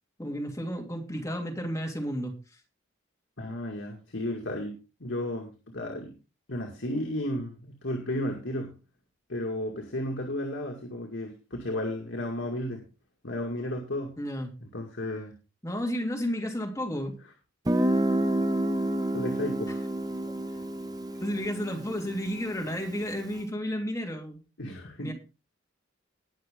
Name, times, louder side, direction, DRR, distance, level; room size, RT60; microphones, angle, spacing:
voice 1, 0.2-2.4 14.2-14.5 15.6-17.2 20.2-20.3 21.2-24.4 25.0-25.1, equal, 15° left, 0 dB, 3.0 m, -32 dB
voice 2, 3.4-6.1 6.5-8.7 9.3-12.8 13.2-14.1 14.6-15.3 19.1-19.9 24.6-25.1, left 1 dB, 70° left, 1 dB, 2.3 m, -33 dB
Guitar, 17.7-23.2, right 1 dB, 20° right, 0.8 m, -29 dB
19.5 x 6.5 x 3.7 m, 0.31 s
head